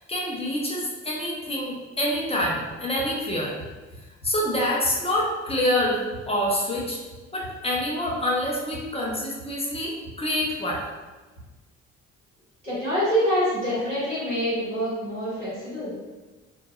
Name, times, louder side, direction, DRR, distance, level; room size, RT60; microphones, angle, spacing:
voice 1, 0.0-3.6 4.2-7.0 7.3-10.8, left 1 dB, 15° left, -4 dB, 0.7 m, -26 dB
Run, 2.1-11.6, right 1 dB, 75° left, 0.9 m, -45 dB
voice 2, 12.6-15.9, equal, 85° right, -11 dB, 1.1 m, -26 dB
2.8 x 2.6 x 2.3 m, 1.3 s
figure-of-eight pair, 45°, 36 cm